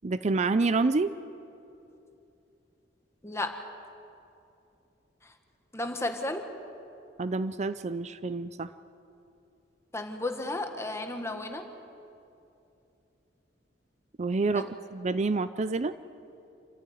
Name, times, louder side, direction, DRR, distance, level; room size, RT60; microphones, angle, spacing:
voice 1, 0.0-1.1 7.2-8.7 14.2-15.9, right 3 dB, 40° right, 13 dB, 0.5 m, -28 dB
voice 2, 3.2-3.7 5.2-5.3 5.7-6.5 9.9-11.7 14.5-14.6, left 2 dB, 15° left, 5 dB, 1.5 m, -33 dB
27.0 x 14.0 x 9.4 m, 2.7 s
head